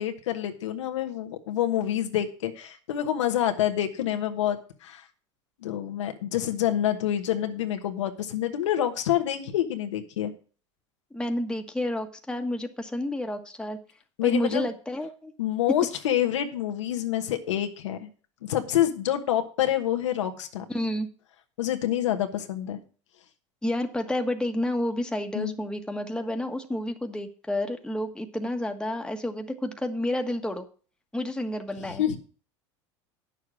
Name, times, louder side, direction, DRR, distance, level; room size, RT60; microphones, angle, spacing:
voice 1, 0.0-5.0 5.6-10.3 14.2-14.6 15.4-18.1 18.4-20.6 21.6-22.8 25.3-25.6 31.8-32.2, left 11 dB, 80° left, 5 dB, 1.3 m, -27 dB
voice 2, 11.1-13.8 14.2-15.3 20.7-21.1 23.6-30.7 31.1-32.1, left 1 dB, 5° left, 5 dB, 1.4 m, -30 dB
9.5 x 6.7 x 6.2 m, 0.39 s
hypercardioid pair, 85°, 15 cm